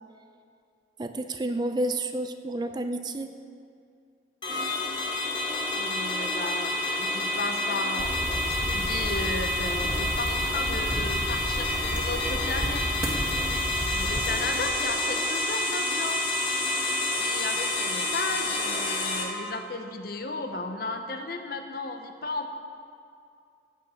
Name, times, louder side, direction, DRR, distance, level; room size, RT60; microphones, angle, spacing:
voice 1, 1.0-3.4, right 1 dB, 25° right, 8 dB, 0.4 m, -30 dB
sound 1, 4.4-19.2, left 2 dB, 25° left, 1.6 m, -29 dB
voice 2, 5.7-8.1 8.4-12.8 13.9-16.2 17.2-22.5, left 3 dB, 55° left, 6 dB, 0.9 m, -34 dB
sound 2, 8.0-14.6, equal, 5° right, 1.8 m, -32 dB
15.0 x 9.2 x 4.4 m, 2.4 s
head